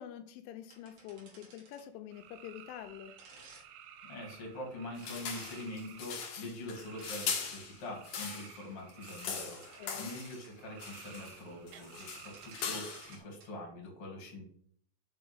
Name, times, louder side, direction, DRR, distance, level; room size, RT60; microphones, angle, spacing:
voice 1, 0.0-3.1 9.8-10.1, left 10 dB, 85° left, 7 dB, 3.1 m, -46 dB
sound 1, 0.7-1.9 3.2-3.6 5.0-5.6 7.0-7.6 8.1-8.3 8.9-10.5 11.7-11.8 12.0-13.5, right 3 dB, 60° right, 1.8 m, -56 dB
sound 2, 2.1-13.2, right 9 dB, 90° right, 3.2 m, -54 dB
voice 2, 4.1-14.4, left 1 dB, 40° left, -1 dB, 2.5 m, -44 dB
sound 3, 5.0-8.6 8.9-10.4 10.8-11.4 11.7-13.2, left 6 dB, 70° left, 2.2 m, -40 dB
6.0 x 5.7 x 5.5 m, 0.62 s
omnidirectional pair, 5.5 m